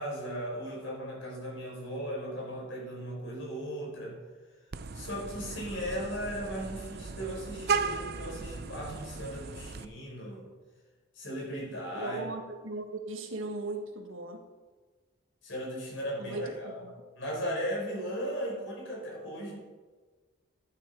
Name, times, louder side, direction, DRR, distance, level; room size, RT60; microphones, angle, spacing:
voice 1, 0.0-4.2 4.9-10.5 11.1-12.2 15.4-16.8 17.2-19.6, equal, 65° left, -2 dB, 4.7 m, -37 dB
Vehicle horn car horn honking, 4.7-9.8, right 5 dB, 50° right, 0.6 m, -36 dB
voice 2, 11.9-14.4 16.2-16.9, right 2 dB, 80° right, 4 dB, 1.7 m, -38 dB
13.5 x 9.3 x 4.8 m, 1.4 s
head